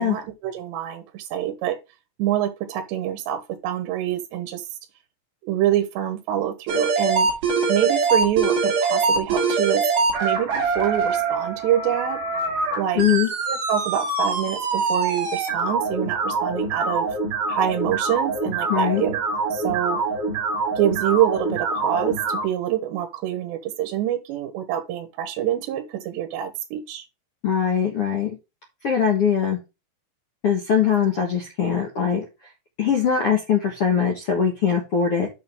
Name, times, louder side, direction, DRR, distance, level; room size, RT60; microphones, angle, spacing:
voice 1, 0.0-1.8 2.2-4.6 5.5-7.3 7.7-9.8 10.2-12.2 12.8-13.0 13.5-17.1 17.5-19.2 19.5-20.0 20.8-27.0, right 11 dB, 85° right, 3.3 m, -26 dB
sound 1, 6.7-22.4, right 4 dB, 50° right, 3.9 m, -24 dB
voice 2, 12.9-13.3 18.7-19.0 27.4-28.3 28.8-29.6 30.4-32.2 32.8-35.3, left 7 dB, 70° left, 1.3 m, -21 dB
8.6 x 6.1 x 3.5 m
omnidirectional pair, 5.0 m